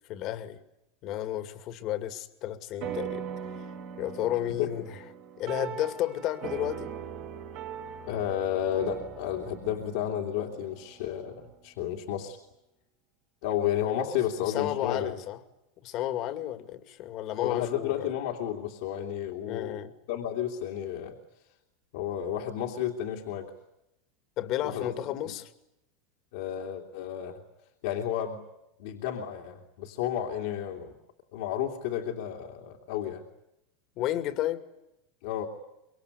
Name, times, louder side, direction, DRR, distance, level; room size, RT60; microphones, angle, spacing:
voice 1, 0.1-0.6 1.0-3.2 4.0-5.0 5.4-6.9 14.5-15.4 15.8-18.1 19.5-19.9 24.4-25.5 34.0-34.6, left 12 dB, 50° left, 10 dB, 2.4 m, -32 dB
sound 1, 2.8-11.5, right 8 dB, 60° right, 5.2 m, -40 dB
voice 2, 8.1-12.4 13.4-15.1 17.4-19.8 20.1-21.2 21.9-23.5 24.6-24.9 25.2-25.3 26.3-27.4 27.8-28.4 28.8-30.9 31.3-33.2 35.2-35.5, left 10 dB, 70° left, 0 dB, 2.8 m, -32 dB
25.5 x 22.5 x 9.8 m, 0.86 s
hypercardioid pair, 105°, 0 cm